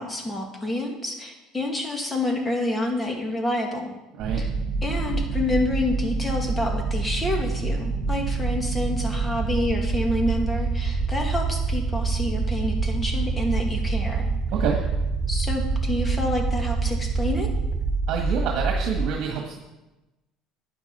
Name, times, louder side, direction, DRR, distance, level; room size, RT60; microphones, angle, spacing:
voice 1, 0.0-3.9 4.3-4.5 4.8-14.3 15.3-17.5, left 1 dB, 20° left, 2 dB, 2.3 m, -28 dB
sound 1, 4.2-19.1, right 4 dB, 35° right, 3.8 m, -26 dB
voice 2, 18.1-19.6, right 7 dB, 65° right, 1 dB, 1.6 m, -27 dB
12.0 x 9.3 x 4.3 m, 1.0 s
supercardioid pair, 105°, 0 cm